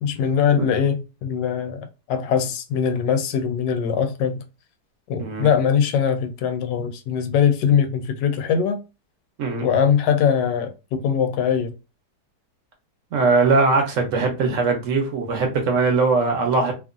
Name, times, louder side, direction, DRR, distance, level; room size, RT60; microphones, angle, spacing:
voice 1, 0.0-4.4 5.1-8.8 9.6-11.7, left 7 dB, 90° left, 1.2 m, -21 dB
voice 2, 5.2-5.5 7.7-7.8 9.4-9.7 13.1-16.7, right 4 dB, 60° right, 0.9 m, -20 dB
2.9 x 2.4 x 2.4 m
omnidirectional pair, 1.8 m